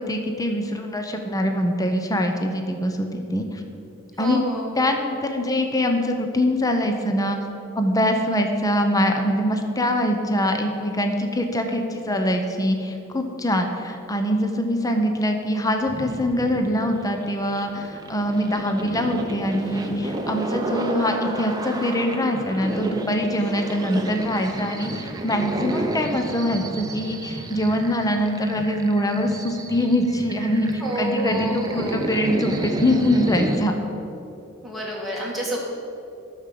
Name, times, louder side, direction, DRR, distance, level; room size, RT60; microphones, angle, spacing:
voice 1, 0.0-3.6 4.2-4.4 4.8-7.4 7.8-30.7 31.0-33.7, equal, 15° left, 4 dB, 0.8 m, -23 dB
voice 2, 4.2-4.9 30.8-32.1 34.6-35.6, right 1 dB, ahead, -4 dB, 2.4 m, -29 dB
sound 1, 15.9-33.6, right 1 dB, 20° right, 0.8 m, -31 dB
10.5 x 6.5 x 7.6 m, 2.8 s
head